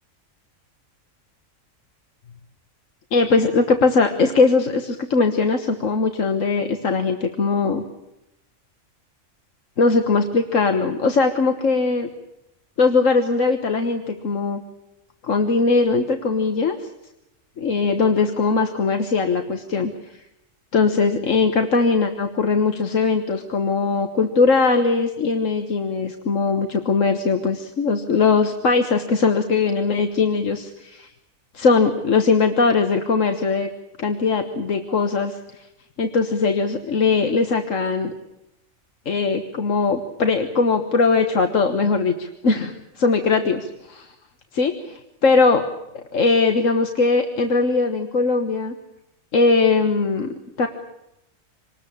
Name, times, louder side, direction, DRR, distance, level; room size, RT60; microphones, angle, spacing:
voice 1, 3.1-7.8 9.8-12.1 12.8-14.6 15.2-16.9 17.6-20.1 20.7-31.1 31.5-33.7 34.0-35.6 36.0-38.1 39.0-44.1 44.5-45.6 45.9-48.7 49.3-50.3 50.6-50.7, left 4 dB, 70° left, 6 dB, 1.7 m, -20 dB
26.5 x 20.0 x 8.6 m, 0.88 s
omnidirectional pair, 1.4 m